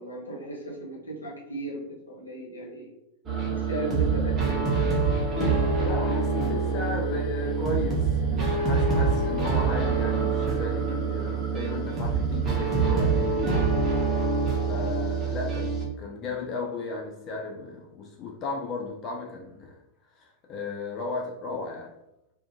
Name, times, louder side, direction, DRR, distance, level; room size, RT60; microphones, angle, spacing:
voice 1, 0.0-2.9 3.7-4.9, right 2 dB, 80° left, -4 dB, 0.7 m, -36 dB
sound 1, 3.3-15.9, right 4 dB, 30° right, 0.6 m, -25 dB
voice 2, 5.8-13.6 14.7-19.8 20.2-21.9, left 3 dB, 35° left, 0 dB, 0.3 m, -35 dB
2.3 x 2.2 x 2.7 m, 0.87 s
figure-of-eight pair, 90°, 0 cm